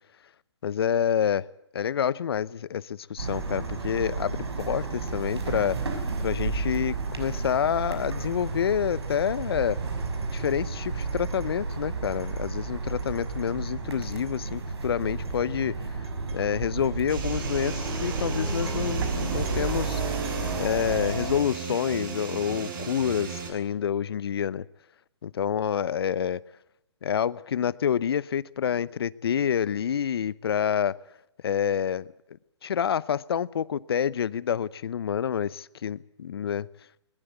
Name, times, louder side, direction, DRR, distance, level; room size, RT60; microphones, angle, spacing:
voice 1, 0.6-1.5 1.7-6.0 6.2-9.8 10.3-16.1 16.3-20.0 20.6-24.7 25.2-26.4 27.0-31.0 31.4-36.7, left 8 dB, 60° left, 20 dB, 0.8 m, -28 dB
sound 1, 3.2-21.4, right 4 dB, 65° right, 6.1 m, -31 dB
sound 2, 17.1-23.5, right 5 dB, 45° right, 7.7 m, -36 dB
21.0 x 20.5 x 8.3 m, 0.81 s
figure-of-eight pair, 135°, 15 cm